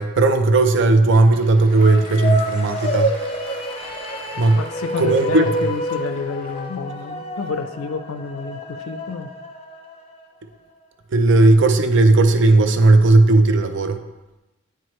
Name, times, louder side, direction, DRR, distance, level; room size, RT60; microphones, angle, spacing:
voice 1, 0.0-3.1 4.4-4.6 5.0-5.5 11.1-14.0, right 2 dB, 60° right, 8 dB, 0.5 m, -15 dB
Applause / Crowd, 0.8-6.8, equal, 20° right, 1.4 m, -42 dB
sound 1, 1.7-10.2, equal, 30° left, 0.5 m, -28 dB
voice 2, 4.5-9.3, left 4 dB, 85° left, 10 dB, 0.5 m, -29 dB
9.4 x 4.6 x 3.1 m, 1.1 s
head